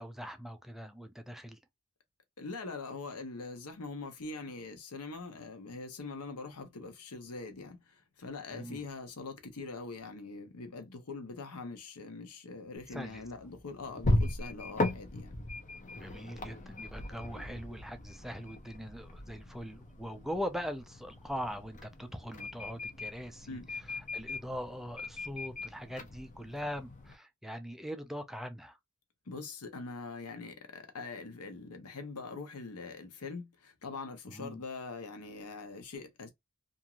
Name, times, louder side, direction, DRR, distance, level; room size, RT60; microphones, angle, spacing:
voice 1, 0.0-1.6 8.5-8.8 12.9-13.2 16.0-23.6 24.1-28.8 34.3-34.6, equal, ahead, 0.4 m, -41 dB
voice 2, 2.4-15.3 23.5-23.7 29.3-36.3, left 3 dB, 85° left, 0.8 m, -43 dB
sound 1, 12.8-27.1, left 2 dB, 35° left, 0.7 m, -38 dB
2.9 x 2.5 x 2.4 m
head